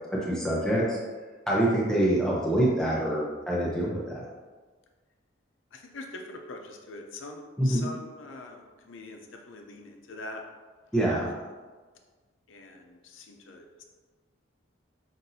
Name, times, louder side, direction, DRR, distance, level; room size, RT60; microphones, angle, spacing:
voice 1, 0.1-1.0 1.5-4.2 7.6-7.9 10.9-11.3, right 1 dB, 5° left, -6 dB, 0.7 m, -25 dB
voice 2, 5.7-10.4 11.3-11.4 12.5-13.8, left 2 dB, 85° left, 3 dB, 0.5 m, -43 dB
5.7 x 2.6 x 2.7 m, 1.4 s
head